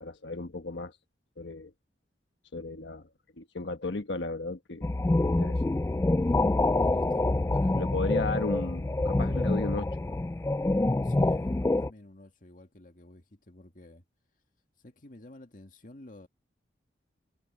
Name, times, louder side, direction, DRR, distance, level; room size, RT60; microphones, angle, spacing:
voice 1, 0.0-1.0 1.4-1.7 2.5-3.1 3.4-4.9 5.2-5.6 7.7-10.0, left 3 dB, 85° left, 1.3 m, -34 dB
sound 1, 4.8-11.9, left 2 dB, 15° left, 0.3 m, -26 dB
voice 2, 6.9-8.3 11.0-14.0 14.8-16.3, left 1 dB, 50° left, 2.0 m, -51 dB
head